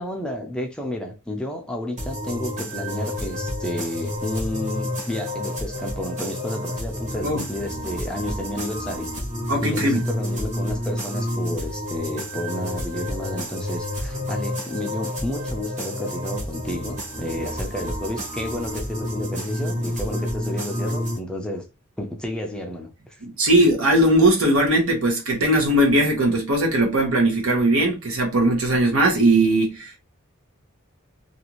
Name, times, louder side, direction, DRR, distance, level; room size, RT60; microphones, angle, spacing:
voice 1, 0.0-9.1 9.6-21.6 22.0-23.2, left 1 dB, 5° left, 0.4 m, -31 dB
sound 1, 2.0-21.2, left 1 dB, 35° right, 1.0 m, -30 dB
voice 2, 9.5-10.0 23.2-30.0, right 1 dB, 75° right, 0.9 m, -19 dB
2.6 x 2.4 x 2.9 m
head